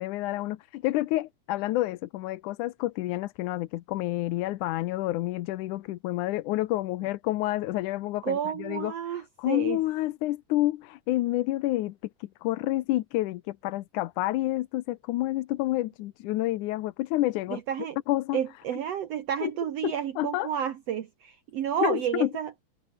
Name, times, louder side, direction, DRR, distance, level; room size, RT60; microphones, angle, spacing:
voice 1, 0.0-8.9 9.4-17.6 18.1-18.4 19.4-19.5 19.8-20.5 21.8-22.3, left 16 dB, 80° left, 2.3 m, -29 dB
voice 2, 8.2-9.8 17.5-18.0 18.3-22.5, right 9 dB, 60° right, 2.1 m, -31 dB
omnidirectional pair, 3.5 m